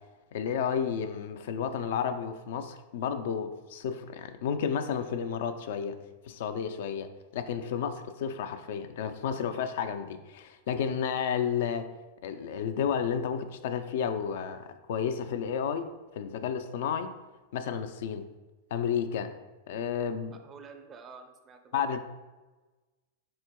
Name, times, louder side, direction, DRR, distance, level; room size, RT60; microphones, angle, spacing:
voice 1, 0.3-6.0 6.2-11.9 12.2-15.9 16.1-17.1 17.5-18.3 18.7-19.3 19.7-20.4 21.7-22.0, left 7 dB, 70° left, 9 dB, 0.3 m, -32 dB
voice 2, 20.3-22.0, right 5 dB, 25° right, 7 dB, 0.4 m, -49 dB
4.3 x 4.3 x 2.2 m, 1.2 s
hypercardioid pair, 125°, 0 cm